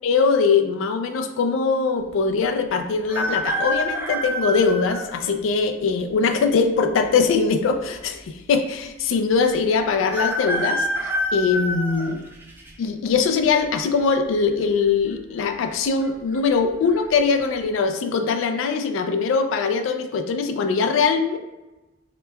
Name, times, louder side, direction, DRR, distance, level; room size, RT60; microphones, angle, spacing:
voice 1, 0.0-10.9 11.3-12.2 12.8-21.4, left 5 dB, 75° left, 6 dB, 0.3 m, -21 dB
sound 1, 3.1-5.1 5.8-5.9 7.0-7.6 7.9-8.0 8.2-8.3 10.1-12.7 13.2-13.6 14.8-15.1 15.4-15.5 16.0-16.4 16.8-17.0, equal, 10° right, 0.4 m, -27 dB
2.9 x 2.2 x 3.2 m, 1.1 s
head